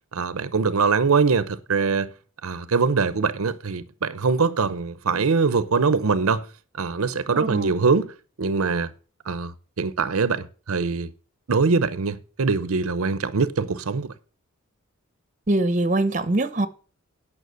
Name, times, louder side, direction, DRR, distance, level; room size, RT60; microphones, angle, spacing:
voice 1, 0.1-2.1 2.4-6.5 6.8-8.1 8.4-8.9 9.3-9.5 9.8-11.1 11.5-14.1, right 4 dB, 80° right, 0.7 m, -23 dB
voice 2, 7.3-7.7 15.5-16.7, right 2 dB, 35° right, 0.8 m, -23 dB
9.4 x 5.8 x 7.8 m
head